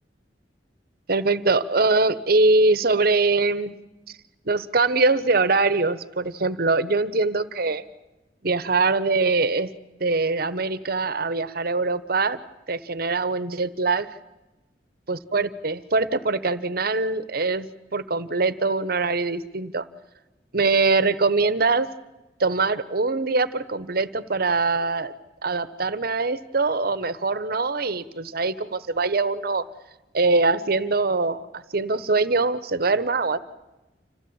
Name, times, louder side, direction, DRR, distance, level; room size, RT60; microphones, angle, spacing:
voice 1, 1.1-3.7 4.5-7.8 8.4-9.7 10.0-12.4 12.7-14.1 15.1-19.8 20.5-21.9 22.4-25.1 25.4-29.6 30.1-33.4, right 3 dB, 60° right, 15 dB, 1.1 m, -23 dB
26.5 x 16.5 x 8.9 m, 1.1 s
head